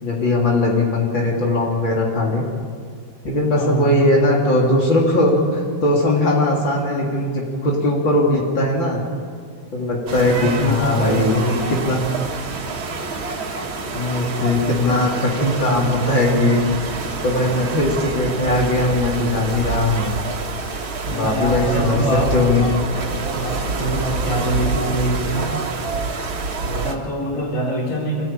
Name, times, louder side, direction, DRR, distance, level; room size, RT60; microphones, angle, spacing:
voice 1, 0.0-2.4 3.2-9.0 9.7-11.4 11.8-12.0 13.9-16.6 17.2-20.1 21.1-22.6, left 1 dB, 70° left, -3 dB, 3.9 m, -19 dB
voice 2, 3.6-4.1 10.2-11.8 21.1-25.6 26.6-28.3, right 1 dB, 40° left, -2 dB, 4.0 m, -25 dB
sound 1, 10.1-26.9, right 3 dB, 80° right, 2.7 m, -27 dB
26.5 x 15.0 x 8.9 m, 2.1 s
omnidirectional pair, 2.2 m